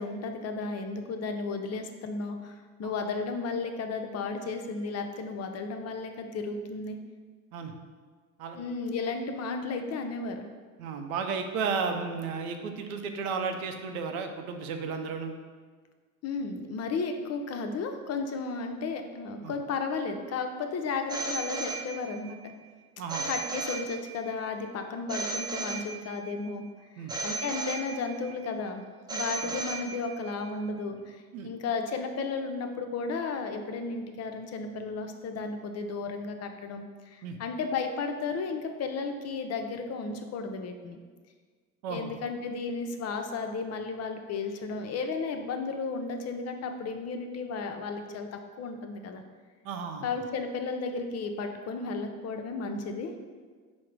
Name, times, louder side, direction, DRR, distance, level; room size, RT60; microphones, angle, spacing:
voice 1, 0.0-7.0 8.6-10.5 16.2-22.5 23.3-26.6 26.9-28.8 29.1-41.0 41.9-49.2 50.0-53.1, left 4 dB, 40° left, 5 dB, 0.5 m, -34 dB
voice 2, 10.8-15.3 19.4-19.5 23.0-23.3 27.0-27.1 29.4-29.5 31.3-31.5 37.2-37.4 41.8-42.1 49.6-50.1, right 5 dB, 80° right, 5 dB, 0.6 m, -33 dB
Telephone, 21.1-22.3 23.1-24.3 25.1-26.3 27.1-28.3 29.1-30.3, right 3 dB, 10° right, 0.4 m, -35 dB
4.7 x 2.2 x 4.5 m, 1.5 s
hypercardioid pair, 70°, 42 cm